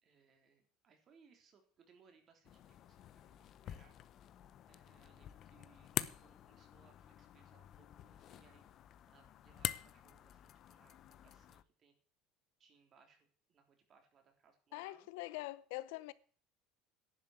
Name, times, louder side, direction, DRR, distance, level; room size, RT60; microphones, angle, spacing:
voice 1, 0.0-3.9 4.6-8.7 9.1-11.9 12.6-13.2 13.5-15.1, right 5 dB, 35° right, 3.6 m, -69 dB
sound 1, 2.4-11.6, left 11 dB, 40° left, 0.7 m, -46 dB
voice 2, 14.7-16.1, left 18 dB, 85° left, 0.7 m, -44 dB
11.0 x 7.4 x 9.2 m
cardioid pair, 150°, 0 cm